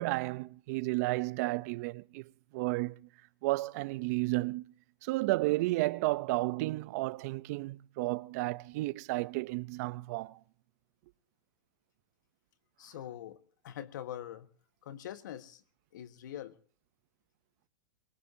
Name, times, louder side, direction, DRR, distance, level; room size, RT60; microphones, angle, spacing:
voice 1, 0.0-3.1 3.4-4.7 5.0-10.4, right 20 dB, 55° right, 0.7 m, -32 dB
voice 2, 12.8-14.5 14.8-15.6 15.9-16.6, left 11 dB, 75° left, 1.5 m, -44 dB
24.0 x 21.5 x 2.8 m
hypercardioid pair, 130°, 10 cm